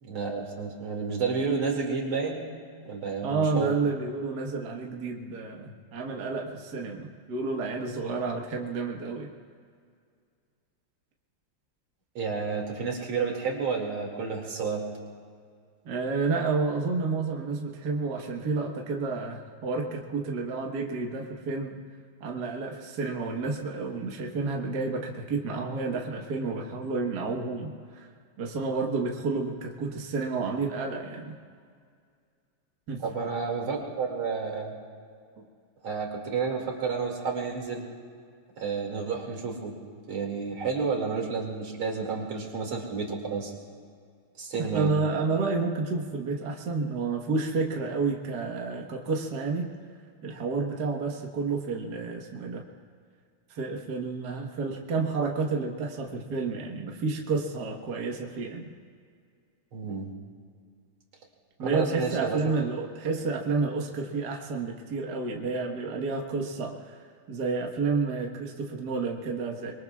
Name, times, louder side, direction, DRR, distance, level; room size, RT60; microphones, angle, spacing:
voice 1, 0.0-2.5 2.8-3.7 12.1-14.9 33.0-34.7 35.8-37.9 38.6-39.7 40.1-43.5 44.4-44.9 59.7-60.1 61.6-62.5, right 5 dB, 90° right, -1 dB, 3.2 m, -30 dB
voice 2, 3.2-9.3 15.9-21.7 22.2-28.1 28.4-31.3 32.9-33.0 35.4-35.5 44.7-49.7 50.2-52.6 53.5-58.7 61.6-69.7, right 4 dB, 55° right, 0 dB, 1.8 m, -30 dB
25.5 x 23.0 x 2.4 m, 2.1 s
omnidirectional pair, 2.3 m